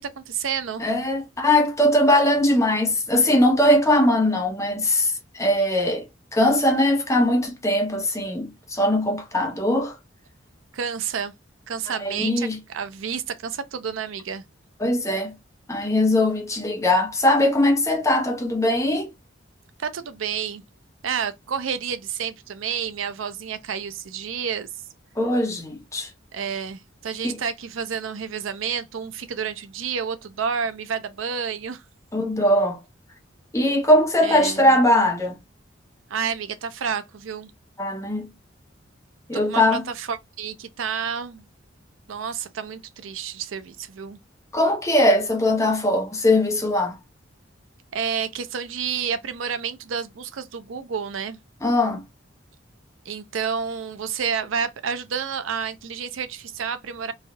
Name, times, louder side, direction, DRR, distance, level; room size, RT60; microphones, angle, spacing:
voice 1, 0.0-0.8 10.7-11.3 11.7-12.5 12.7-14.4 19.8-20.6 21.0-24.7 26.3-31.8 34.2-34.7 36.1-37.5 39.5-41.4 42.1-44.2 47.9-51.4 53.1-57.1, right 7 dB, 80° right, 0.5 m, -30 dB
voice 2, 0.8-6.1 6.3-10.0 11.9-12.6 14.8-15.3 15.7-19.1 25.2-26.1 27.2-27.4 32.1-32.8 33.5-35.4 37.8-38.3 39.3-39.8 44.5-47.0 51.6-52.0, left 1 dB, 15° left, 0.8 m, -20 dB
3.3 x 2.6 x 2.2 m
head